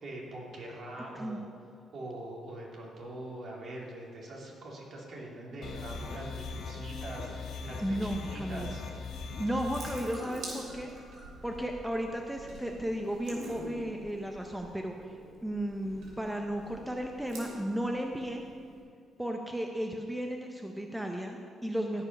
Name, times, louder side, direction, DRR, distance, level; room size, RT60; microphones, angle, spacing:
voice 1, 0.0-1.4 1.9-8.8, right 1 dB, 55° right, -3 dB, 2.8 m, -43 dB
sound 1, 5.6-10.0, left 4 dB, 75° left, 2.1 m, -40 dB
voice 2, 7.8-8.7 9.4-10.9 11.4-15.2 15.4-18.4 19.2-22.1, equal, 5° right, 2 dB, 0.8 m, -34 dB
Water tap faucet / Sink (filling or washing) / Drip, 9.0-18.8, right 1 dB, 80° right, 2.9 m, -47 dB
15.5 x 5.5 x 5.4 m, 2.3 s
cardioid pair, 90°, 0 cm